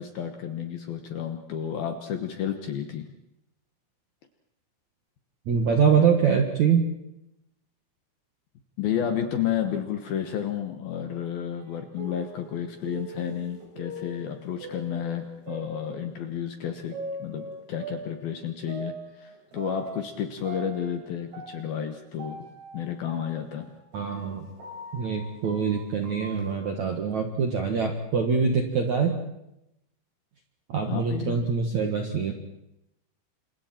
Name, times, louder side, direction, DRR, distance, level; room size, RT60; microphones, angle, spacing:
voice 1, 0.0-3.1 8.8-22.5 22.7-23.7 30.9-31.4, left 9 dB, 65° left, 6 dB, 2.5 m, -31 dB
voice 2, 5.5-6.8 23.9-24.5 24.9-29.2 30.7-32.3, right 6 dB, 60° right, 3 dB, 1.9 m, -24 dB
sound 1, 11.6-16.4 16.9-20.2 20.4-26.6, right 2 dB, 85° right, 8.2 m, -41 dB
29.5 x 27.5 x 4.5 m, 0.85 s
omnidirectional pair, 5.8 m